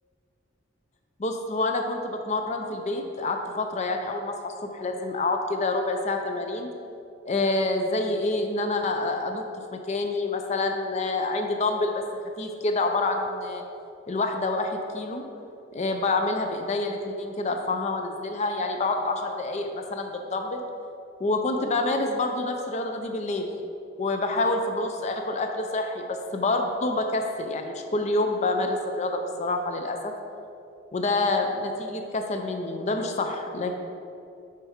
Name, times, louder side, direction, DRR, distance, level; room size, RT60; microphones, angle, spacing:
voice 1, 1.2-6.7 7.3-9.4 9.7-12.0 12.4-13.6 14.1-15.2 15.7-20.6 21.2-23.5 24.0-30.1 30.9-33.7, left 2 dB, 35° left, 5 dB, 0.4 m, -27 dB
6.3 x 4.5 x 4.9 m, 2.6 s
head